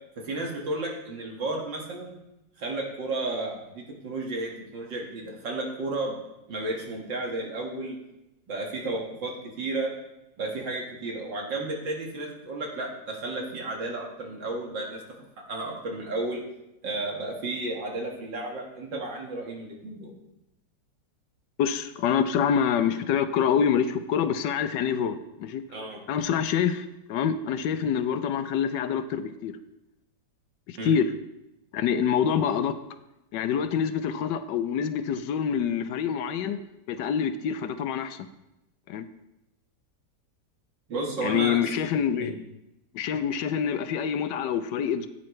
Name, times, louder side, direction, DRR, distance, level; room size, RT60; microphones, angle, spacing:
voice 1, 0.2-2.2 2.6-6.1 6.5-8.0 8.5-9.9 10.4-15.0 15.5-16.4 16.8-20.1 25.7-26.0 30.8-30.9 40.9-41.6 42.2-42.3, right 2 dB, 80° right, -1 dB, 2.6 m, -32 dB
voice 2, 21.6-25.6 26.1-29.5 30.7-31.1 31.7-32.7 33.3-36.6 36.9-38.3 38.9-39.1 41.2-42.4 42.9-45.1, left 8 dB, 75° left, 11 dB, 1.3 m, -26 dB
15.0 x 8.7 x 3.2 m, 0.91 s
omnidirectional pair, 1.9 m